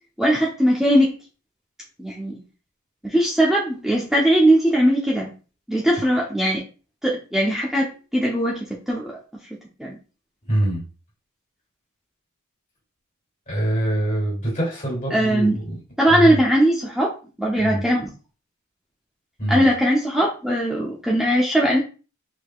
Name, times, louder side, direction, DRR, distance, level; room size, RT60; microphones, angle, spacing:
voice 1, 0.2-1.1 2.0-2.3 3.0-5.3 5.7-6.6 7.0-9.2 9.8-10.0 15.1-15.6 16.0-18.1 19.5-21.8, right 1 dB, ahead, -4 dB, 0.7 m, -20 dB
voice 2, 10.5-10.8 13.5-15.8 16.1-16.4 17.6-17.8 19.4-19.7, right 1 dB, 35° left, -2 dB, 2.4 m, -24 dB
4.8 x 3.7 x 2.3 m, 0.34 s
head